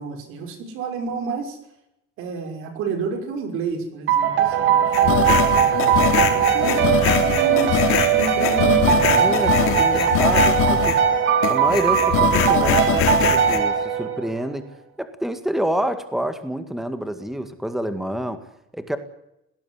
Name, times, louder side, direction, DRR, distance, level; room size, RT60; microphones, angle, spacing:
voice 1, 0.0-1.6 2.2-5.4 6.2-8.9, right 4 dB, 85° right, 6 dB, 6.0 m, -30 dB
sound 1, 4.1-14.5, right 8 dB, 65° right, 2.6 m, -19 dB
sound 2, 4.9-11.1 11.4-13.6, left 9 dB, 90° left, 4.1 m, -22 dB
voice 2, 9.2-11.0 11.5-14.7 15.0-18.4 18.7-19.0, equal, ahead, 9 dB, 2.0 m, -27 dB
19.0 x 18.5 x 9.8 m, 0.84 s
cardioid pair, 160°, 21 cm